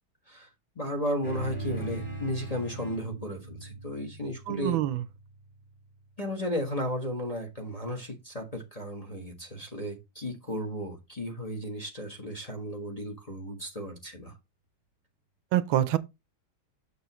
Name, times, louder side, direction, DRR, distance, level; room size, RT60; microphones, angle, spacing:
voice 1, 0.7-4.8 6.2-14.3, equal, 25° left, 1.1 m, -34 dB
sound 1, 1.2-6.0, right 2 dB, 5° left, 1.8 m, -40 dB
voice 2, 4.5-5.0 15.5-16.0, right 13 dB, 80° right, 1.4 m, -25 dB
6.9 x 6.7 x 3.0 m
omnidirectional pair, 2.2 m